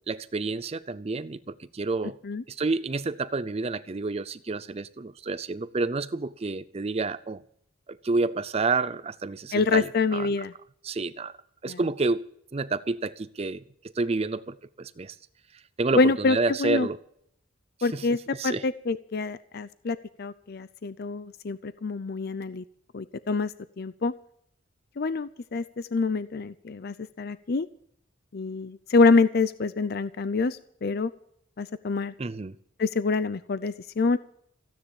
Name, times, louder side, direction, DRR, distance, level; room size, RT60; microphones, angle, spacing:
voice 1, 0.1-2.1 2.5-7.4 8.0-10.3 10.8-11.3 11.6-13.6 14.0-15.1 15.8-17.0 17.9-18.1 18.3-18.6 32.2-32.6, right 3 dB, 30° right, 0.5 m, -29 dB
voice 2, 9.5-10.5 11.6-11.8 16.0-16.9 17.8-18.2 18.4-22.6 22.9-24.1 25.0-27.7 28.3-31.1 31.6-32.1 32.8-34.2, left 4 dB, 50° left, 0.5 m, -26 dB
15.5 x 10.0 x 7.1 m
head